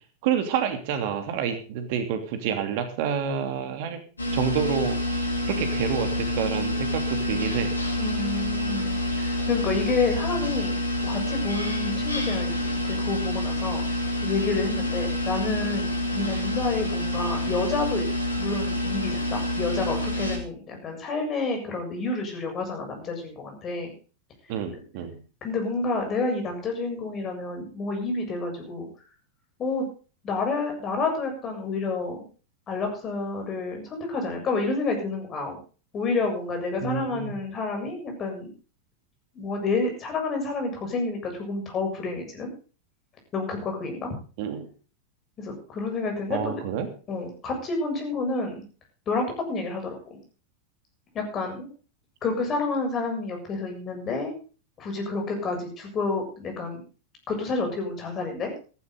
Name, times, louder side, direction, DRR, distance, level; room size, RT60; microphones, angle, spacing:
voice 1, 0.2-4.0 4.3-7.7 24.5-25.2 36.8-37.3 44.4-44.7 46.3-46.9, right 8 dB, 50° right, 7 dB, 3.0 m, -28 dB
sound 1, 4.2-20.4, left 1 dB, 80° left, 4.0 m, -27 dB
voice 2, 8.0-13.9 14.2-18.0 18.4-23.9 25.4-28.9 29.6-29.9 30.2-32.2 32.7-35.6 35.9-38.5 39.3-42.5 43.3-44.1 45.4-46.6 47.1-48.6 49.1-50.2 51.1-51.7 52.2-54.4 54.8-56.8 57.3-58.5, left 3 dB, 25° left, 3 dB, 7.3 m, -29 dB
15.0 x 15.0 x 3.9 m, 0.37 s
figure-of-eight pair, 90°, 0 cm